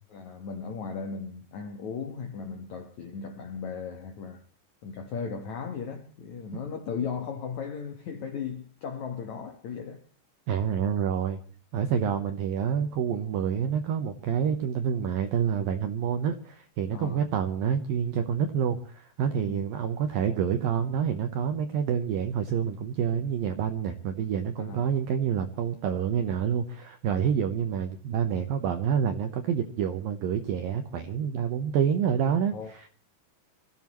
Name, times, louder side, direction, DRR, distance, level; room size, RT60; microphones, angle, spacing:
voice 1, 0.1-4.4 4.8-10.0 16.9-17.2 19.4-19.7 24.6-24.8 32.5-32.7, left 6 dB, 85° left, 1.6 m, -36 dB
voice 2, 10.5-11.4 11.7-32.9, right 8 dB, 80° right, 2.0 m, -28 dB
26.5 x 15.0 x 3.0 m
omnidirectional pair, 5.4 m